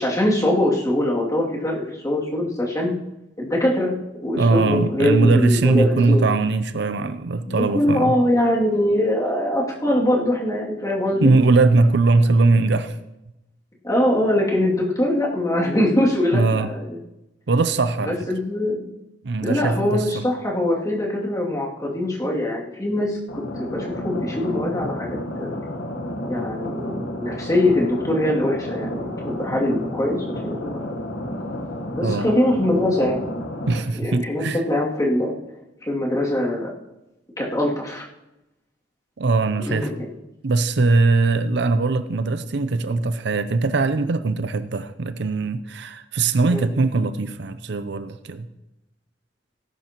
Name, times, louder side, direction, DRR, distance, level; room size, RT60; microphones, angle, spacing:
voice 1, 0.0-2.9 3.4-3.9 4.2-6.2 7.4-11.3 13.8-17.0 18.0-18.8 19.4-25.5 26.3-30.8 31.9-33.3 33.9-35.3 35.8-36.7 37.4-38.1 39.6-40.1 46.5-46.6, left 1 dB, 20° left, 2.6 m, -22 dB
voice 2, 4.4-8.1 11.2-12.9 16.3-16.7 17.5-18.1 19.2-20.2 32.0-32.3 33.7-34.6 39.2-39.9 40.4-48.5, right 3 dB, 65° right, 0.6 m, -20 dB
sound 1, 23.3-33.8, left 1 dB, 75° left, 1.3 m, -31 dB
18.0 x 10.5 x 3.0 m
head